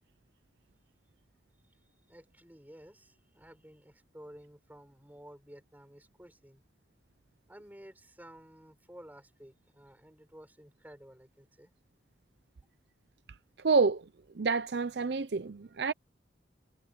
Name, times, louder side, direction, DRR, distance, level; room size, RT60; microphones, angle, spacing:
voice 1, 2.1-6.6 7.5-11.7, equal, 10° right, 4.5 m, -53 dB
voice 2, 13.6-14.1 14.3-15.9, right 4 dB, 65° right, 0.6 m, -28 dB
head